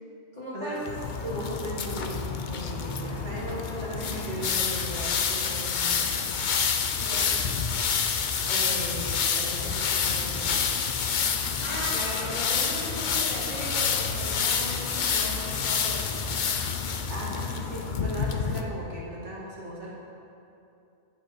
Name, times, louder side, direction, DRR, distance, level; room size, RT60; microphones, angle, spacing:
voice 1, 0.3-0.8 7.0-7.4 11.6-16.0, equal, 30° left, -8 dB, 2.2 m, -36 dB
sound 1, 0.8-18.6, left 6 dB, 55° left, 0.5 m, -28 dB
voice 2, 1.2-6.1 8.5-10.6 17.1-19.9, right 1 dB, 60° right, -5 dB, 1.9 m, -37 dB
13.5 x 5.4 x 4.5 m, 2.8 s
omnidirectional pair, 1.4 m